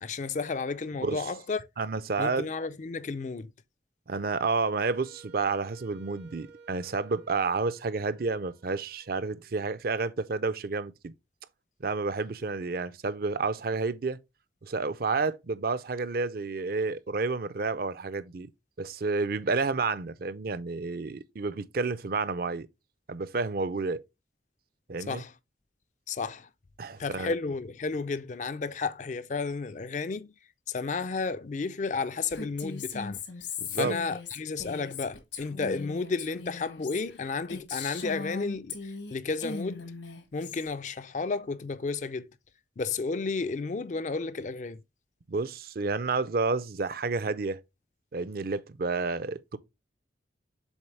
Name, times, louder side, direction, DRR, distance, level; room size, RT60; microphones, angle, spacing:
voice 1, 0.0-1.7 2.2-3.5 25.1-25.3 26.1-26.5 27.0-30.3 30.7-33.2 33.7-40.0 40.3-42.3 42.8-44.8, left 4 dB, 40° left, 0.4 m, -32 dB
voice 2, 1.8-2.5 4.1-11.1 11.8-14.2 14.6-18.5 18.8-22.7 23.1-24.0 24.9-25.2 26.8-27.3 33.6-34.0 45.3-47.6 48.1-49.6, right 4 dB, 50° right, 0.5 m, -30 dB
Wind instrument woodwind instrument, 4.7-9.7, right 4 dB, 80° right, 2.4 m, -55 dB
Female speech woman speaking, 32.3-39.1 39.4-40.7, left 4 dB, 75° left, 1.4 m, -39 dB
7.2 x 4.2 x 3.2 m
head